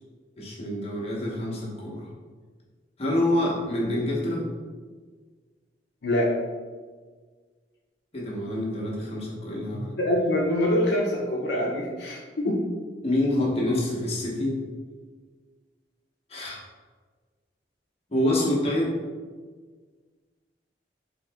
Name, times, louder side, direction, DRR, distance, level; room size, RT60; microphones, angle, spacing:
voice 1, 0.4-2.1 3.0-4.4 8.1-10.0 13.0-14.6 16.3-16.6 18.1-18.9, left 1 dB, 35° left, -5 dB, 0.9 m, -26 dB
voice 2, 6.0-6.4 9.7-12.6, left 1 dB, 65° left, -4 dB, 0.6 m, -25 dB
3.9 x 2.8 x 3.4 m, 1.5 s
head